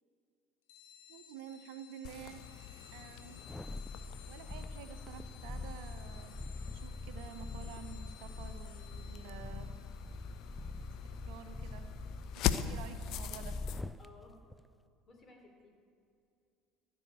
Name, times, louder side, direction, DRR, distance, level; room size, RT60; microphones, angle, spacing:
sound 1, 0.7-12.8, left 9 dB, 70° left, 0.9 m, -59 dB
voice 1, 1.1-2.4 2.9-3.4 4.3-6.4 6.7-9.7 11.1-11.9 12.3-13.5, right 8 dB, 60° right, 9 dB, 0.8 m, -50 dB
sound 2, 2.1-13.8, left 10 dB, 55° left, 0.6 m, -43 dB
sound 3, 3.4-14.1 14.5-14.6, left 2 dB, 5° left, 0.4 m, -44 dB
voice 2, 14.0-14.5 15.1-15.7, left 3 dB, 35° left, 3 dB, 3.0 m, -57 dB
14.5 x 7.0 x 8.5 m, 2.4 s
figure-of-eight pair, 65°, 0 cm